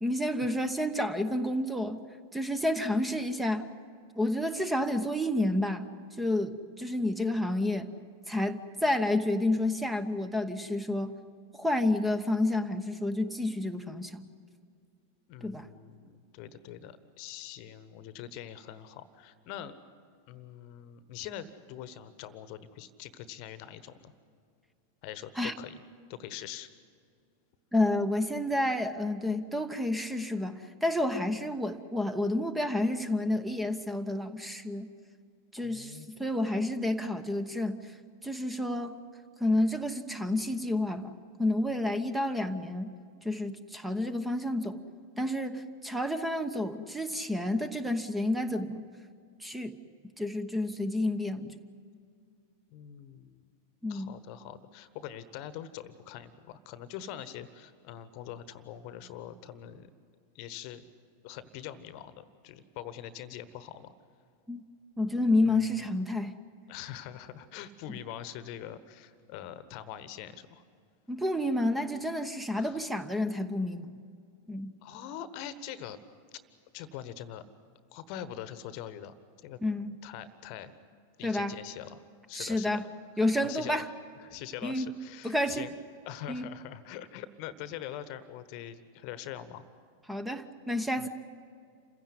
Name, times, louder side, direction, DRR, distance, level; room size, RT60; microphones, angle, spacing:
voice 1, 0.0-2.0 2.3-3.6 4.2-5.9 6.2-7.9 8.3-11.1 11.5-14.2 15.4-15.7 25.4-25.5 27.7-34.9 35.5-37.9 38.2-39.0 39.4-41.1 41.4-42.9 43.2-44.8 45.2-48.9 49.4-49.8 50.2-51.5 53.8-54.1 64.5-64.6 65.0-66.3 71.1-73.9 74.5-74.7 79.6-79.9 81.2-81.5 82.3-82.8 83.2-83.9 84.6-84.9 85.2-85.7 86.3-86.4 90.1-91.1, left 1 dB, 5° right, 11 dB, 1.1 m, -30 dB
voice 2, 15.3-19.8 20.3-24.1 25.0-25.8 26.1-26.7 35.6-36.1 36.5-36.6 52.7-53.4 53.9-59.9 60.3-60.8 61.2-63.9 65.4-65.7 66.7-70.6 72.5-72.8 74.8-76.0 76.3-76.4 76.7-77.4 77.9-79.1 79.4-79.6 80.0-80.7 81.2-82.8 83.4-83.8 84.2-85.7 86.0-89.6 91.0-91.1, left 11 dB, 45° left, 14 dB, 1.2 m, -43 dB
28.0 x 16.0 x 9.6 m, 2.3 s
figure-of-eight pair, 90°, 0 cm